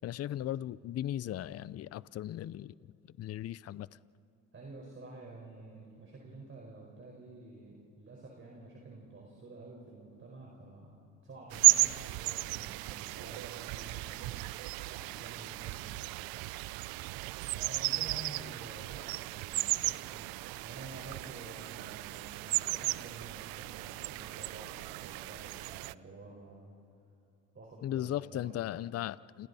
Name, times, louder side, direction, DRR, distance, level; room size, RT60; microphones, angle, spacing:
voice 1, 0.0-2.7 3.1-3.9 27.8-29.5, left 12 dB, 45° left, 19 dB, 0.5 m, -37 dB
voice 2, 4.5-14.4 14.9-16.0 17.5-20.3 20.6-26.7 27.5-28.9, right 2 dB, 35° right, -2 dB, 4.9 m, -50 dB
sound 1, 11.5-25.9, right 20 dB, 85° right, 0.5 m, -34 dB
29.0 x 29.0 x 4.2 m, 2.6 s
cardioid pair, 90°, 35 cm